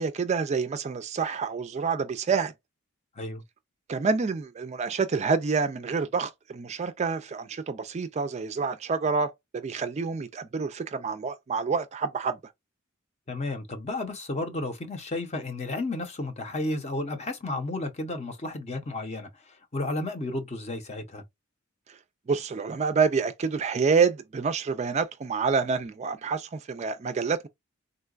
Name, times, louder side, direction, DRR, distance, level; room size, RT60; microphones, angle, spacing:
voice 1, 0.0-2.5 3.9-12.4 21.9-22.0 22.3-27.5, right 5 dB, 30° right, 0.3 m, -27 dB
voice 2, 13.3-21.2, left 2 dB, 30° left, 0.7 m, -32 dB
3.8 x 2.2 x 2.3 m
head